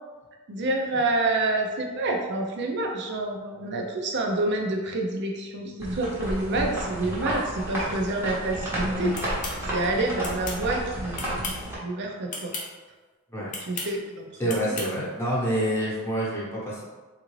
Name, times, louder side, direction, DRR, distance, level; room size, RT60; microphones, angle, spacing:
voice 1, 0.5-9.1 9.7-11.4 11.8-12.5 13.6-14.5, right 2 dB, 50° right, 1 dB, 0.5 m, -28 dB
sound 1, 5.8-11.8, right 1 dB, 10° right, 0.8 m, -31 dB
sound 2, 9.1-9.6 10.2-10.6 11.1-11.7 12.3-12.7 13.5-13.9 14.5-14.9, left 3 dB, 35° left, 0.6 m, -34 dB
voice 2, 14.4-16.9, right 1 dB, 10° left, -7 dB, 1.0 m, -27 dB
3.6 x 2.5 x 3.1 m, 1.3 s
head